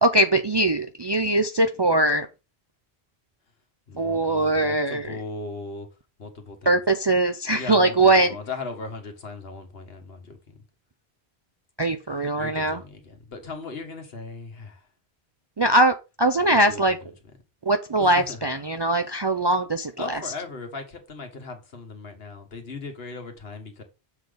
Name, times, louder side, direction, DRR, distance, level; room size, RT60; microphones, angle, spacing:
voice 1, 0.0-2.3 4.0-5.1 6.7-8.3 11.8-12.8 15.6-17.0 17.7-20.2, right 2 dB, 40° right, 0.4 m, -21 dB
voice 2, 3.9-5.9 6.2-6.8 7.5-10.6 12.4-14.9 16.5-17.1 18.0-18.5 19.1-19.2 20.0-23.8, left 3 dB, 70° left, 1.7 m, -38 dB
7.3 x 4.0 x 5.0 m
omnidirectional pair, 1.1 m